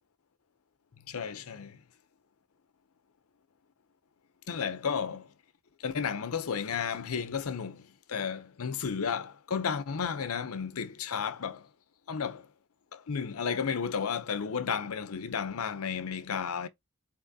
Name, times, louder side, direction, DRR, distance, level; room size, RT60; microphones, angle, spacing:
voice 1, 1.1-1.8 4.5-5.3 5.8-11.7 12.1-12.5 12.9-16.7, left 6 dB, 90° left, 0.6 m, -33 dB
4.2 x 3.6 x 2.7 m
head